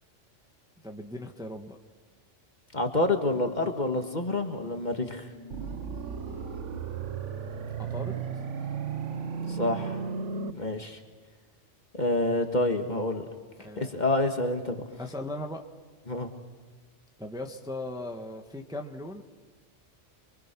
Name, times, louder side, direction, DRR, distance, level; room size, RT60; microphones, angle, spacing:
voice 1, 0.8-1.8 7.8-8.2 13.6-13.9 15.0-15.6 17.2-19.2, left 1 dB, 5° right, 3 dB, 1.3 m, -38 dB
voice 2, 2.7-5.3 9.5-10.0 10.5-11.0 12.0-13.2 13.8-14.8 16.1-16.3, left 2 dB, 35° left, 5 dB, 1.9 m, -28 dB
sound 1, 5.0-6.9 7.5-9.9 10.2-10.3, right 1 dB, 40° right, 3.6 m, -48 dB
sound 2, 5.5-10.5, right 6 dB, 75° right, 1.3 m, -34 dB
27.5 x 24.0 x 6.1 m, 1.4 s
omnidirectional pair, 1.3 m